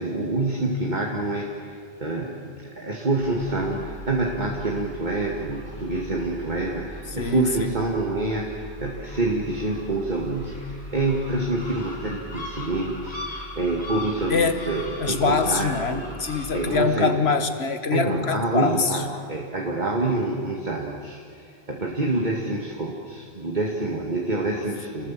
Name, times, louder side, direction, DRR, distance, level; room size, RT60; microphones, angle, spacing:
voice 1, 0.0-16.0 16.5-17.1 17.9-25.1, right 2 dB, 45° right, -1 dB, 2.2 m, -27 dB
sound 1, 3.2-16.8, left 1 dB, 45° left, 4.1 m, -39 dB
voice 2, 7.2-7.7 14.3-14.6 15.0-19.0, left 4 dB, 75° left, 9 dB, 1.7 m, -24 dB
29.0 x 20.0 x 7.6 m, 2.4 s
omnidirectional pair, 1.1 m